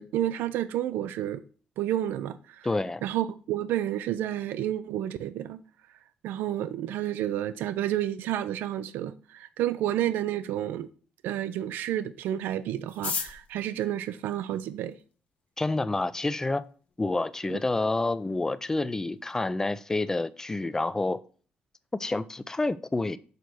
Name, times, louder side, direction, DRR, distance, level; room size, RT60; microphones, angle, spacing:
voice 1, 0.0-1.4 1.8-2.7 3.0-5.6 6.2-10.9 11.2-15.0, right 12 dB, 85° right, 0.4 m, -30 dB
voice 2, 2.6-3.0 15.6-16.6 17.0-21.2 21.9-23.2, left 2 dB, 15° left, 0.4 m, -28 dB
sound 1, 12.9-15.1 15.9-16.0 16.2-16.3 16.6-17.1 17.4-17.5 17.7-18.1 18.4-18.6 19.0-19.3, left 5 dB, 45° left, 1.0 m, -36 dB
6.6 x 4.0 x 6.1 m
cardioid pair, 110°, 3 cm